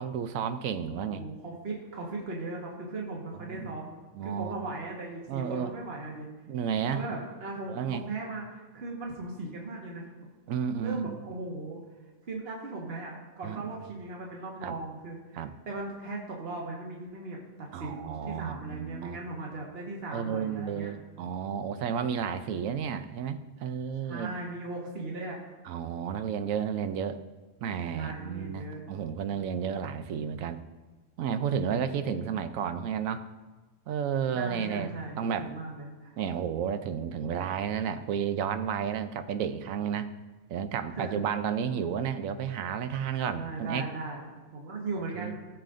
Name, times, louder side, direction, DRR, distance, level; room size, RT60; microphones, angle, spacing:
voice 1, 0.0-1.2 3.3-3.7 4.1-4.6 5.3-5.7 6.5-7.0 7.7-8.0 10.5-11.2 13.4-13.6 14.6-14.8 15.3-15.5 17.7-19.2 20.1-24.3 25.7-27.2 27.6-30.6 31.2-33.2 33.9-35.5 36.2-40.1 40.5-43.8 45.1-45.3, right 7 dB, 80° right, 10 dB, 1.1 m, -32 dB
voice 2, 1.1-6.3 6.9-10.0 10.8-11.8 12.3-20.9 24.0-25.4 27.9-28.8 34.3-36.1 40.9-41.2 43.3-45.4, right 2 dB, 50° right, -2 dB, 1.6 m, -38 dB
16.5 x 7.5 x 2.6 m, 1.2 s
omnidirectional pair, 1.4 m